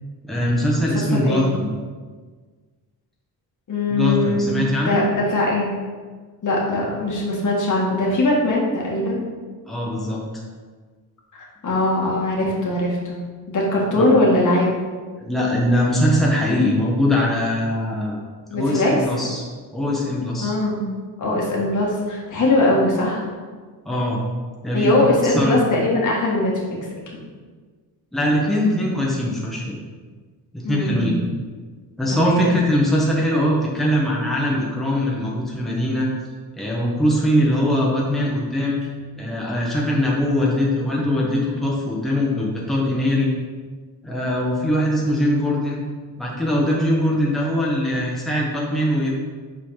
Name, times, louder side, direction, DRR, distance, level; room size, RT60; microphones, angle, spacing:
voice 1, 0.2-1.7 3.9-5.0 9.7-10.2 14.0-14.1 15.2-18.2 18.5-19.4 19.7-20.5 23.8-24.2 24.6-24.9 25.2-25.6 28.1-29.8 30.5-31.2 32.0-36.1 36.5-38.9 39.2-43.3 44.0-45.8 46.2-49.1, left 1 dB, ahead, -4 dB, 1.2 m, -21 dB
voice 2, 1.1-1.5 3.7-4.5 4.8-5.7 6.4-9.2 11.3-13.2 13.5-14.7 18.5-18.9 20.4-23.3 24.7-26.8 30.6-31.2 32.1-32.5, left 1 dB, 50° left, -3 dB, 1.8 m, -21 dB
5.9 x 4.3 x 5.7 m, 1.5 s
cardioid pair, 125°, 38 cm